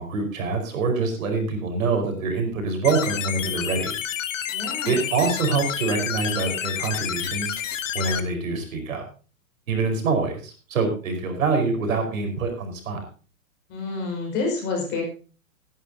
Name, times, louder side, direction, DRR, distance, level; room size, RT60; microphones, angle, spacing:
voice 1, 0.0-3.9 4.9-7.6 7.9-9.0 9.7-13.0, right 4 dB, 65° right, 4 dB, 5.0 m, -25 dB
sound 1, 2.8-8.2, left 10 dB, 60° left, 1.5 m, -29 dB
voice 2, 4.5-5.0 13.7-15.0, left 4 dB, 25° left, 0 dB, 5.4 m, -28 dB
18.5 x 11.0 x 2.8 m, 0.36 s
hypercardioid pair, 165°, 43 cm